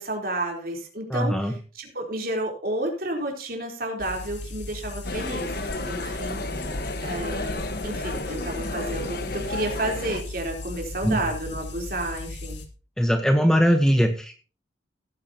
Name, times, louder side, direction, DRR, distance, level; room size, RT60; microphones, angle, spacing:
voice 1, 0.0-5.6 5.9-6.7 7.0-12.6, right 1 dB, 50° right, 2 dB, 3.8 m, -31 dB
voice 2, 1.1-1.5 11.0-11.2 13.0-14.4, equal, 5° left, 6 dB, 1.0 m, -21 dB
sound 1, 4.0-12.7, left 2 dB, 75° left, 2.2 m, -37 dB
sound 2, 5.0-10.2, left 2 dB, 50° left, 1.3 m, -32 dB
17.0 x 9.5 x 2.9 m, 0.36 s
head